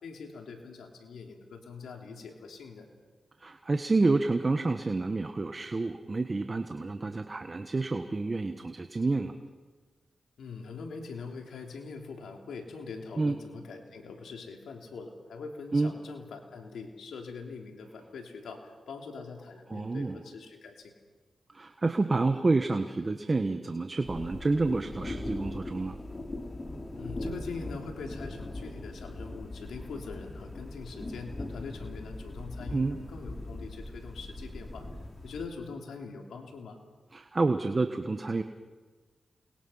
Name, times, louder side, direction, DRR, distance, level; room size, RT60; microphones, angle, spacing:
voice 1, 0.0-2.9 10.4-20.9 26.9-34.9 35.2-36.8, left 4 dB, 85° left, 2 dB, 3.3 m, -43 dB
voice 2, 3.4-9.4 13.2-13.4 15.7-15.9 19.7-20.2 21.5-26.0 32.7-33.0 37.1-38.4, right 3 dB, 40° right, 7 dB, 1.4 m, -29 dB
sound 1, 24.0-35.5, left 2 dB, 35° left, 3.5 m, -40 dB
29.0 x 21.5 x 5.8 m, 1.4 s
cardioid pair, 45°, 0 cm